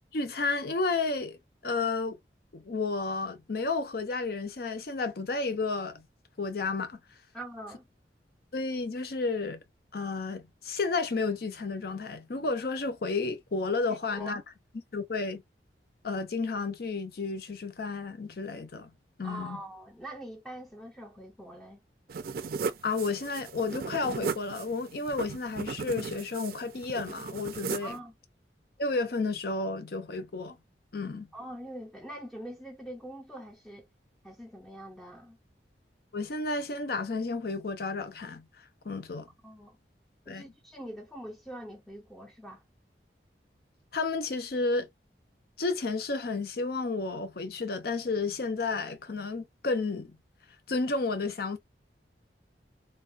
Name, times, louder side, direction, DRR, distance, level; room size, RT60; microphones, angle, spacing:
voice 1, 0.1-1.4 1.6-2.2 2.5-6.0 6.4-7.0 8.5-9.6 9.9-14.4 14.9-15.4 16.0-18.9 19.2-19.6 22.8-28.0 28.8-30.6 30.9-31.3 36.1-38.4 38.8-39.3 40.3-40.5 43.9-44.9 45.6-50.2 50.7-51.6, left 3 dB, 60° left, 0.6 m, -32 dB
voice 2, 7.3-7.8 14.1-14.3 19.2-21.8 27.8-28.1 31.3-33.9 34.2-35.4 39.4-39.8 40.3-42.6, right 1 dB, 5° left, 0.5 m, -43 dB
sound 1, 22.1-28.0, right 5 dB, 55° right, 0.4 m, -36 dB
3.3 x 2.3 x 2.4 m
head